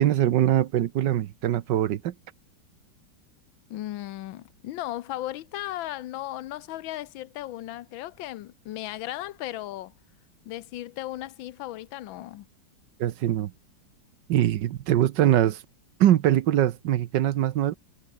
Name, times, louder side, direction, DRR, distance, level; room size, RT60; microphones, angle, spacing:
voice 1, 0.0-2.1 13.0-13.5 14.3-15.6 16.0-17.7, right 12 dB, 70° right, 1.4 m, -22 dB
voice 2, 3.7-9.9 10.4-12.5, left 14 dB, 85° left, 1.5 m, -36 dB
omnidirectional pair, 2.1 m